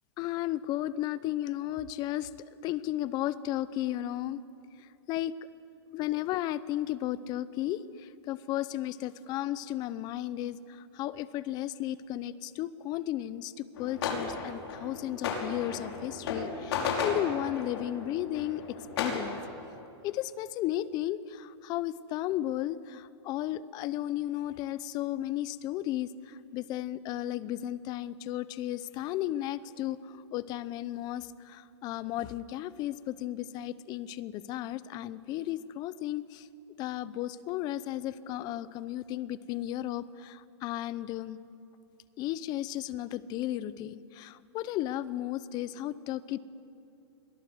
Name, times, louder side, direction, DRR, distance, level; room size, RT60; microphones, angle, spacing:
voice 1, 0.2-4.4 5.1-5.4 5.9-19.4 20.0-36.5 36.8-41.4 42.2-46.4, left 13 dB, 30° left, 17 dB, 0.7 m, -34 dB
sound 1, 13.8-19.2, left 5 dB, 65° left, 5.7 m, -34 dB
29.0 x 23.5 x 7.9 m, 2.7 s
hypercardioid pair, 155°, 15 cm